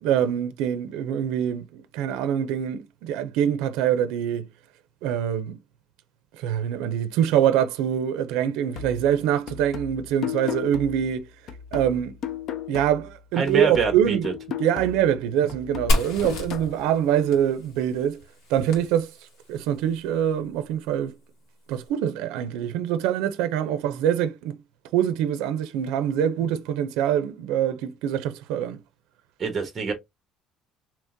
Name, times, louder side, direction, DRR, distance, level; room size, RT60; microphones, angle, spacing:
voice 1, 0.0-4.5 5.0-5.6 6.4-11.3 11.7-12.2 12.7-14.3 14.6-18.2 18.5-19.1 19.5-21.1 21.7-24.6 24.9-28.8, right 9 dB, 85° right, 0.4 m, -24 dB
sound 1, 8.7-13.2 13.5-16.7, left 8 dB, 45° left, 0.5 m, -36 dB
voice 2, 13.4-14.3 29.4-29.9, right 5 dB, 20° right, 1.0 m, -26 dB
Fire, 15.9-19.6, left 1 dB, 70° left, 1.6 m, -30 dB
3.6 x 2.9 x 2.5 m
cardioid pair, 160°, 0 cm